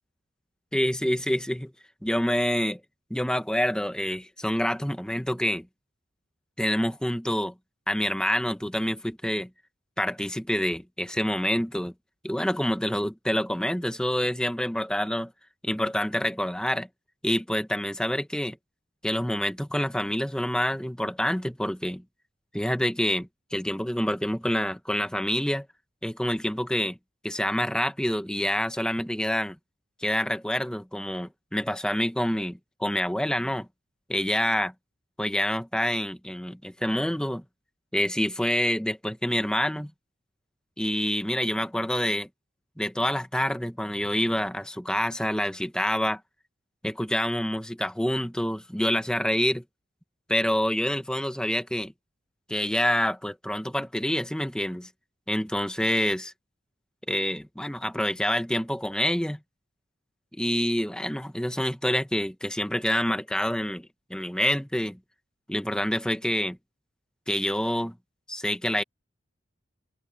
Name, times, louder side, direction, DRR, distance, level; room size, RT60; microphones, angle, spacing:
voice 1, 0.7-1.7 2.0-2.8 3.1-5.7 6.6-7.5 7.9-9.5 10.0-11.9 12.2-15.3 15.6-16.9 17.2-18.6 19.0-22.0 22.5-25.7 26.0-27.0 27.2-29.6 30.0-33.7 34.1-34.7 35.2-37.4 37.9-39.9 40.8-42.3 42.8-46.2 46.8-49.6 50.3-51.9 52.5-54.9 55.3-56.3 57.1-59.4 60.3-65.0 65.5-66.6 67.3-68.0 68.3-68.8, equal, 5° left, 1.2 m, -27 dB
head